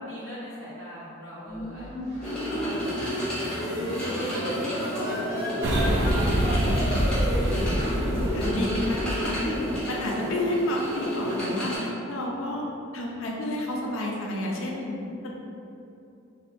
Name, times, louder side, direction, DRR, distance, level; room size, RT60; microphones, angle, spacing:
voice 1, 0.1-1.9 2.2-7.8, equal, 75° right, -12 dB, 1.4 m, -41 dB
sound 1, 1.5-9.1, equal, 20° right, 1.0 m, -34 dB
sound 2, 2.2-11.8, equal, 5° left, 0.7 m, -31 dB
sound 3, 5.6-9.8, right 1 dB, 55° right, 0.3 m, -26 dB
voice 2, 8.3-12.7 12.9-15.3, left 1 dB, 75° left, -1 dB, 0.5 m, -30 dB
3.2 x 2.7 x 2.5 m, 2.7 s
head